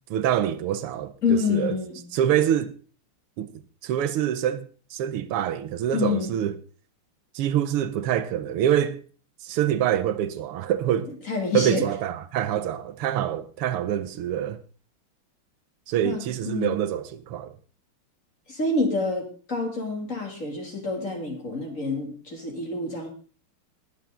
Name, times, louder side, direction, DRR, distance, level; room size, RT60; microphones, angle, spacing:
voice 1, 0.1-1.8 2.1-2.7 3.4-3.5 3.8-6.5 7.4-9.0 9.4-11.1 11.5-14.6 15.9-17.5, right 10 dB, 85° right, 1.8 m, -25 dB
voice 2, 1.2-2.0 5.9-6.4 11.3-11.9 16.0-16.8 18.5-23.1, left 4 dB, 35° left, 3.1 m, -27 dB
20.5 x 7.4 x 3.8 m
omnidirectional pair, 2.4 m